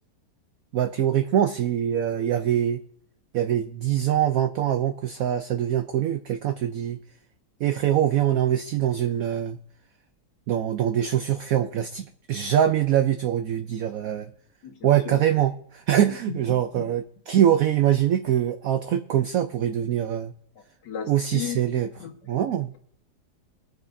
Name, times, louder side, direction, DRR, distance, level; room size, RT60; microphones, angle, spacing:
voice 1, 0.7-2.8 3.3-7.0 7.6-9.6 10.5-14.3 14.8-20.3 21.1-21.9 22.3-22.7, right 10 dB, 70° right, 8 dB, 0.9 m, -23 dB
voice 2, 14.6-15.2 16.3-16.4 16.8-16.9 20.8-22.4, left 8 dB, 70° left, 1 dB, 2.1 m, -36 dB
20.5 x 9.2 x 2.6 m, 0.64 s
omnidirectional pair, 1.9 m